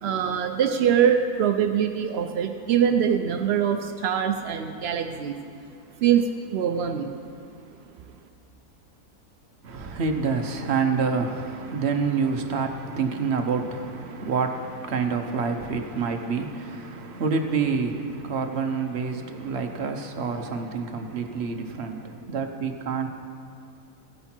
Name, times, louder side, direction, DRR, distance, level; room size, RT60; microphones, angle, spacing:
voice 1, 0.0-5.4 6.0-7.1, right 8 dB, 85° right, 6 dB, 0.5 m, -23 dB
voice 2, 9.6-23.1, right 5 dB, 50° right, 5 dB, 1.0 m, -27 dB
15.0 x 10.0 x 4.4 m, 2.5 s
omnidirectional pair, 1.7 m